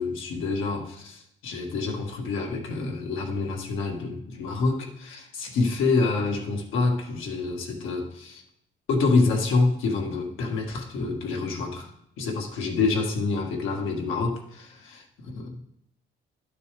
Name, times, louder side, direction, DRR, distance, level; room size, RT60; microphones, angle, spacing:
voice 1, 0.0-8.4 8.9-11.9 12.2-15.6, left 3 dB, 85° left, 1 dB, 1.5 m, -27 dB
12.0 x 6.7 x 3.4 m, 0.75 s
cardioid pair, 90°, 20 cm